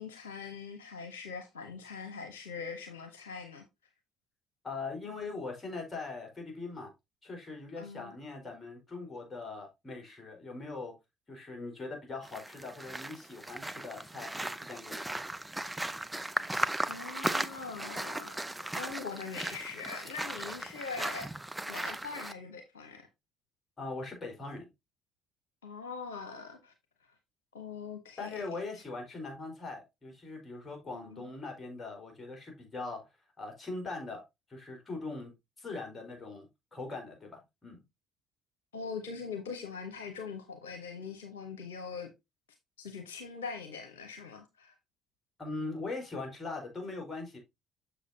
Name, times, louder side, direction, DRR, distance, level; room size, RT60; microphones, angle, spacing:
voice 1, 0.0-3.6 7.8-8.1 16.9-18.4 18.7-21.3 21.7-23.1 25.6-26.7 27.5-28.3 30.9-31.3 38.7-42.1 42.8-44.7, left 5 dB, 80° left, 0.9 m, -42 dB
voice 2, 4.6-6.9 7.2-10.9 11.3-15.0 23.8-24.7 28.2-33.1 33.4-34.2 34.5-37.8 45.4-47.4, left 3 dB, 25° left, 4.3 m, -41 dB
sound 1, 12.2-22.3, right 1 dB, 10° right, 0.7 m, -37 dB
7.2 x 6.9 x 2.7 m
hypercardioid pair, 50°, 0 cm